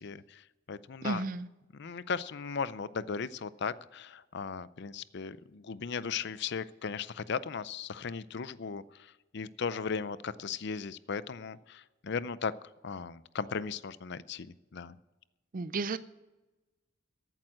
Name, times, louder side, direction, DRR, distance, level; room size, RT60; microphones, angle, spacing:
voice 1, 0.0-1.2 1.7-12.5 12.8-15.0, left 5 dB, 55° left, 17 dB, 0.5 m, -37 dB
voice 2, 1.0-1.5 15.5-16.0, right 3 dB, 40° right, 14 dB, 0.4 m, -33 dB
14.0 x 9.0 x 7.5 m, 1.1 s
head